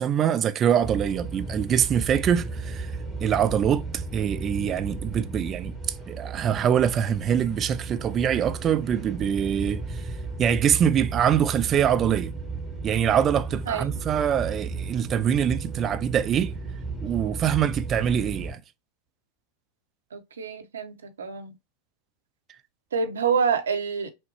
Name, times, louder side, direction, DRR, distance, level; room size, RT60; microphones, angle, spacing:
voice 1, 0.0-2.9 3.2-5.7 6.1-10.0 10.4-12.3 12.8-16.5 17.0-18.6, right 9 dB, 25° right, 0.4 m, -24 dB
sound 1, 0.8-18.5, right 3 dB, ahead, 1.2 m, -34 dB
voice 2, 13.7-14.0 20.1-21.5 22.9-24.1, right 6 dB, 70° right, 0.8 m, -27 dB
6.2 x 2.2 x 2.8 m
figure-of-eight pair, 90°, 0 cm